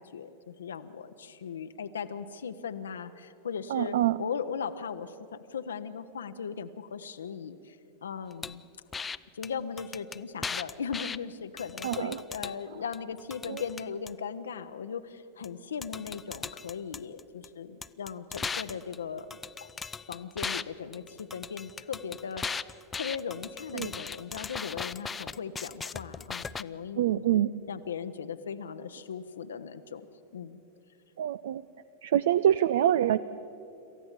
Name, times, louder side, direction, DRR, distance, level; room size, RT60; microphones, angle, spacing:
voice 1, 0.0-8.6 9.3-19.7 20.1-22.5 23.0-27.4 27.7-30.1 30.3-30.6, left 6 dB, 65° left, 9 dB, 0.8 m, -38 dB
voice 2, 3.7-4.2 11.8-12.2 13.5-13.6 23.7-23.9 27.0-27.5 31.2-31.6 32.0-33.2, right 11 dB, 60° right, 16 dB, 0.4 m, -25 dB
sound 1, 8.4-8.6 8.9-9.2 9.4-9.5 9.8-11.2 11.6-12.6 12.9-14.1 15.4-15.5 15.8-17.5 17.8-20.6 20.9-26.6, left 5 dB, 15° left, 0.4 m, -37 dB
27.0 x 14.5 x 7.3 m, 2.7 s
figure-of-eight pair, 90°, 0 cm